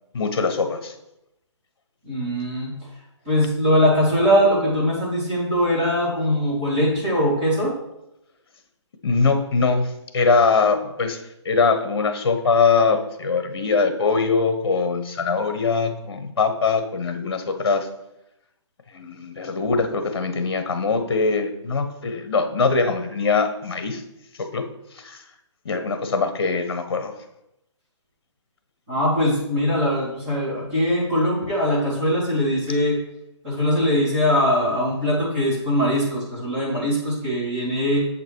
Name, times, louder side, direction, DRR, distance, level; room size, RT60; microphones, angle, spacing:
voice 1, 0.1-0.9 9.0-11.2 11.4-17.9 18.9-24.0 24.4-24.7 25.0-25.2 25.6-27.1, left 4 dB, 50° left, 8 dB, 1.2 m, -22 dB
voice 2, 2.0-2.7 3.2-7.7 28.9-33.0 33.4-38.1, equal, 20° right, -7 dB, 2.9 m, -21 dB
7.5 x 5.9 x 4.7 m, 0.87 s
hypercardioid pair, 170°, 16 cm